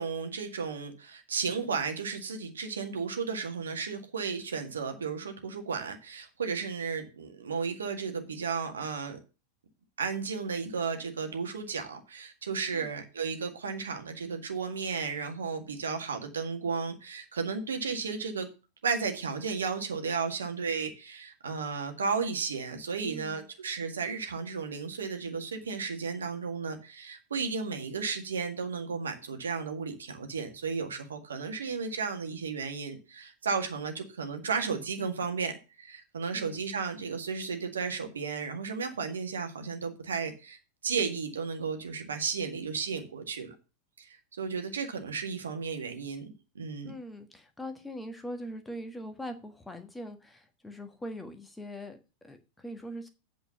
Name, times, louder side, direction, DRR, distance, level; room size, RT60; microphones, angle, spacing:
voice 1, 0.0-9.2 10.0-18.5 18.8-43.5 44.0-46.9, right 5 dB, 70° right, 6 dB, 1.8 m, -34 dB
voice 2, 23.0-23.5 36.3-36.6 46.8-53.1, equal, 5° left, 7 dB, 1.4 m, -42 dB
8.5 x 5.1 x 6.7 m, 0.31 s
figure-of-eight pair, 90°, 0 cm